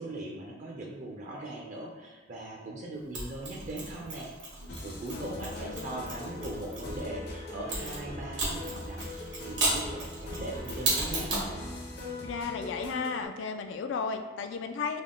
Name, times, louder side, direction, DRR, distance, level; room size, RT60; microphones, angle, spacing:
voice 1, 0.0-4.3 4.8-11.3, right 2 dB, 40° right, -2 dB, 0.4 m, -40 dB
Mechanisms, 3.1-7.0 7.7-11.5, right 2 dB, 90° right, 1.2 m, -34 dB
sound 1, 4.6-13.2, left 1 dB, 60° left, 0.7 m, -40 dB
voice 2, 5.1-6.1 12.2-15.0, left 5 dB, 75° left, 7 dB, 0.3 m, -35 dB
3.5 x 2.1 x 3.7 m, 1.4 s
head